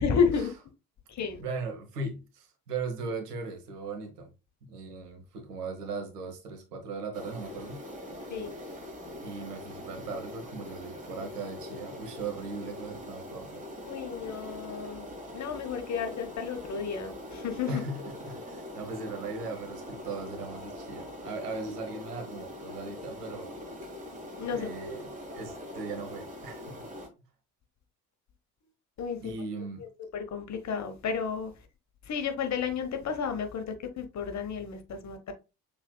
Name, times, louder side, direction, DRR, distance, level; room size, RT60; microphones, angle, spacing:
voice 1, 0.0-0.5 1.1-1.4 8.3-8.5 13.9-15.1 15.3-17.8 24.4-25.0 29.0-29.3 30.1-31.5 32.1-35.3, left 6 dB, 35° left, 1.1 m, -32 dB
voice 2, 1.4-4.3 4.6-7.8 9.2-13.6 17.7-23.6 24.5-26.8 29.2-29.8, right 3 dB, 75° right, 1.2 m, -38 dB
sound 1, 7.1-27.1, left 1 dB, 15° right, 1.9 m, -43 dB
6.1 x 3.4 x 2.2 m
figure-of-eight pair, 50°, 47 cm